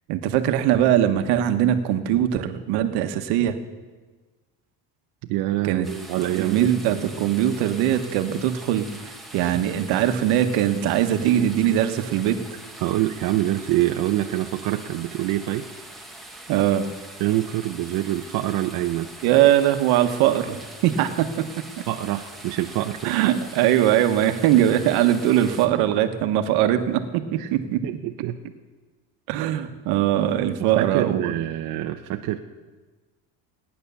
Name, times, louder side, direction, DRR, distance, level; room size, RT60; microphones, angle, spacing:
voice 1, 0.1-3.6 5.6-5.9 6.3-8.9 9.3-12.4 16.5-16.8 19.2-21.5 23.0-27.8 29.3-31.3, right 11 dB, 75° right, 8 dB, 1.3 m, -21 dB
voice 2, 5.3-6.7 9.4-9.5 11.2-11.5 12.8-15.7 17.2-19.1 21.9-23.5 27.4-27.5 27.8-28.4 29.3-29.4 30.6-32.4, right 14 dB, 55° right, 4 dB, 0.8 m, -26 dB
sound 1, 5.8-25.7, right 1 dB, ahead, 1.3 m, -43 dB
17.0 x 10.0 x 6.9 m, 1.3 s
cardioid pair, 165°, 39 cm